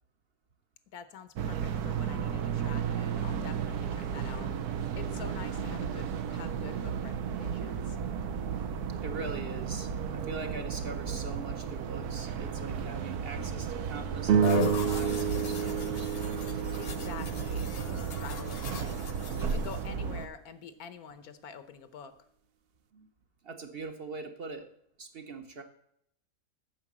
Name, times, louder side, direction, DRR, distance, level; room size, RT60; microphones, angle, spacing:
voice 1, 0.9-4.5 4.9-8.0 16.8-19.0 19.4-22.1, left 7 dB, 80° left, 11 dB, 1.4 m, -47 dB
sound 1, 1.4-20.3, right 7 dB, 80° right, 1.3 m, -34 dB
voice 2, 9.0-16.1 22.9-23.1 23.4-24.7 25.0-25.6, right 3 dB, 45° right, 6 dB, 0.9 m, -42 dB
sound 2, 14.2-18.8, right 7 dB, 60° right, 0.6 m, -30 dB
sound 3, 14.4-19.8, left 7 dB, 50° left, 0.9 m, -39 dB
8.8 x 6.4 x 7.3 m, 0.72 s
omnidirectional pair, 1.6 m